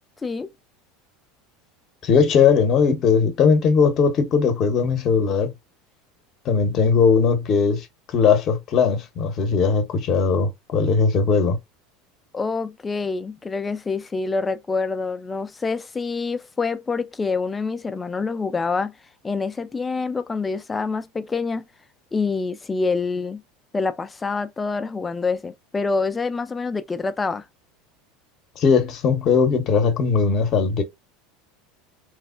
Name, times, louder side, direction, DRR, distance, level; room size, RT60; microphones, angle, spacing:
voice 1, 2.0-5.5 6.4-11.6 28.6-30.8, left 5 dB, 45° left, 0.8 m, -19 dB
voice 2, 12.3-18.9 19.2-21.6 22.1-23.4 23.7-27.4, left 4 dB, 20° left, 0.4 m, -26 dB
3.1 x 2.0 x 2.4 m
hypercardioid pair, 90°, 0 cm